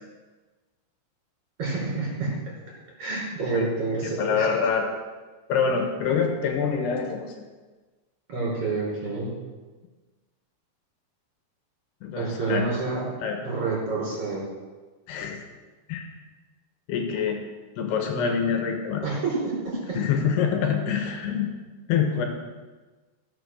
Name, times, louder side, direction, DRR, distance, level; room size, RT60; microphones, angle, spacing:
voice 1, 1.6-2.3 3.0-4.5 8.3-9.3 12.1-13.0 13.4-14.4 19.0-20.0, right 3 dB, 30° right, -5 dB, 6.2 m, -28 dB
voice 2, 4.0-4.9 5.5-7.5 12.0-12.7 13.2-13.4 15.1-15.4 15.9-16.1 16.9-17.4 17.8-19.0 20.0-21.5 21.9-22.3, left 6 dB, 70° left, 3 dB, 3.2 m, -25 dB
18.0 x 7.4 x 6.4 m, 1.3 s
omnidirectional pair, 5.2 m